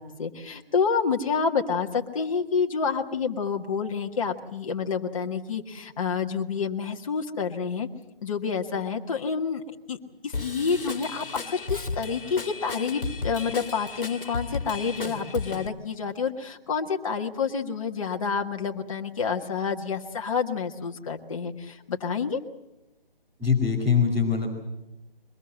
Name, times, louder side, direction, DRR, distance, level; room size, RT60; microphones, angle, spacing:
voice 1, 0.0-7.9 8.2-9.6 9.9-10.0 10.2-22.4, left 5 dB, 35° left, 3 dB, 1.6 m, -28 dB
Drum kit / Drum, 10.3-15.7, left 4 dB, 65° left, 2.0 m, -34 dB
voice 2, 23.4-24.5, left 6 dB, 5° right, -6 dB, 2.2 m, -22 dB
22.5 x 21.0 x 7.6 m, 0.97 s
figure-of-eight pair, 150°, 29 cm